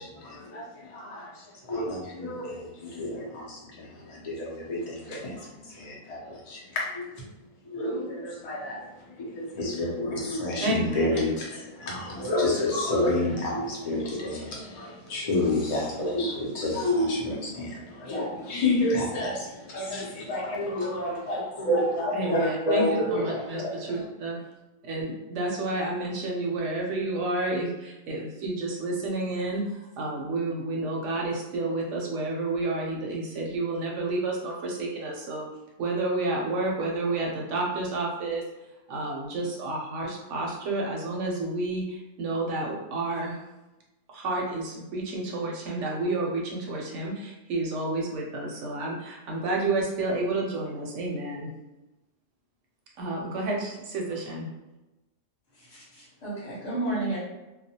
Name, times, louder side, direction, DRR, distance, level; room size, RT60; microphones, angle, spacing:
voice 1, 0.0-7.3 7.6-24.1, left 1 dB, 50° left, -4 dB, 0.4 m, -29 dB
voice 2, 10.6-11.3 22.1-22.8 23.1-24.4 24.8-35.5 35.8-38.4 38.9-43.4 44.1-51.5 53.0-54.5, right 2 dB, 65° right, -1 dB, 0.9 m, -30 dB
voice 3, 55.5-57.2, right 2 dB, 30° left, -8 dB, 1.0 m, -32 dB
2.3 x 2.1 x 2.7 m, 1.0 s
omnidirectional pair, 1.5 m